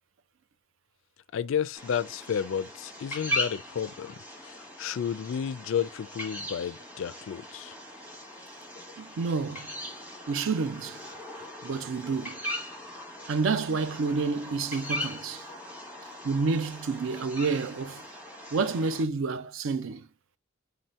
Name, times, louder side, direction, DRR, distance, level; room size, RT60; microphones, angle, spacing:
voice 1, 1.3-7.8, left 8 dB, 65° left, 0.3 m, -32 dB
sound 1, 1.7-19.0, left 1 dB, 10° right, 0.9 m, -39 dB
voice 2, 9.0-9.7 10.3-11.0 11.6-12.4 13.3-15.4 16.2-18.0 18.5-20.1, right 4 dB, 65° right, 0.4 m, -29 dB
3.9 x 2.8 x 3.0 m
head